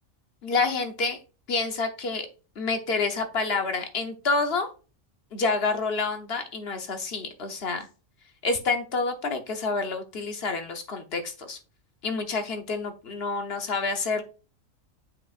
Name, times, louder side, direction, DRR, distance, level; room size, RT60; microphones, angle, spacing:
voice 1, 0.4-1.2 1.5-2.3 2.6-4.7 5.3-7.9 8.4-11.6 12.0-14.2, left 4 dB, 55° left, 7 dB, 1.1 m, -28 dB
8.6 x 4.9 x 2.4 m, 0.34 s
omnidirectional pair, 1.3 m